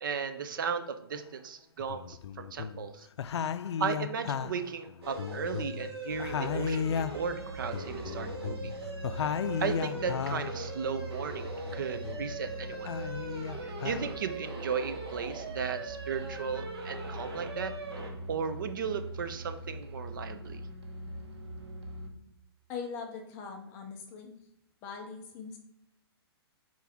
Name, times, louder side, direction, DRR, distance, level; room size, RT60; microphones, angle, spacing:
voice 1, 0.0-3.1 3.8-8.6 9.6-12.9 13.6-17.7 18.3-20.6, right 6 dB, 50° right, 9 dB, 0.6 m, -35 dB
sound 1, 1.1-1.2 1.8-2.9 3.2-5.9 6.2-10.6 11.0-12.4 12.7-14.0, left 7 dB, 90° left, 0.4 m, -35 dB
sound 2, 5.0-18.1, right 2 dB, 70° right, 1.8 m, -41 dB
sound 3, 6.1-22.1, right 1 dB, 90° right, 1.3 m, -43 dB
voice 2, 22.7-24.3 24.8-25.6, left 5 dB, 15° left, 3 dB, 0.5 m, -41 dB
6.0 x 4.5 x 3.5 m, 0.82 s
hypercardioid pair, 170°, 14 cm